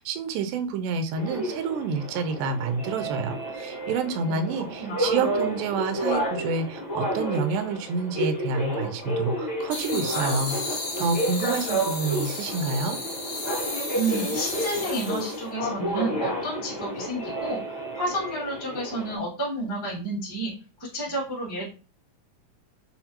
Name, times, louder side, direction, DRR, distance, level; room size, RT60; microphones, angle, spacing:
voice 1, 0.0-13.0, right 4 dB, 85° right, 7 dB, 1.8 m, -28 dB
sound 1, 1.2-19.2, equal, 50° left, 1.3 m, -31 dB
voice 2, 4.8-5.3 13.9-17.6 17.9-20.5 20.8-21.6, right 2 dB, 15° left, -5 dB, 0.8 m, -30 dB
sound 2, 9.7-15.5, left 2 dB, 75° left, 0.8 m, -34 dB
5.6 x 2.1 x 2.8 m, 0.35 s
omnidirectional pair, 4.2 m